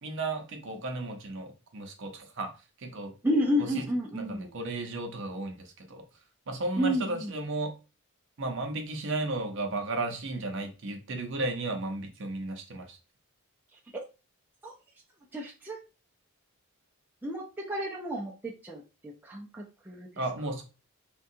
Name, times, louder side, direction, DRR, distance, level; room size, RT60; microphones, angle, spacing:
voice 1, 0.0-2.5 2.8-3.1 3.6-3.9 4.1-5.5 5.9-6.0 6.5-7.7 8.4-13.0 20.2-20.6, right 2 dB, 55° right, 5 dB, 0.6 m, -34 dB
voice 2, 3.2-4.5 6.7-7.3 14.6-14.7 15.3-15.8 17.2-20.1, equal, 10° right, -2 dB, 0.4 m, -31 dB
3.6 x 2.3 x 2.6 m, 0.31 s
head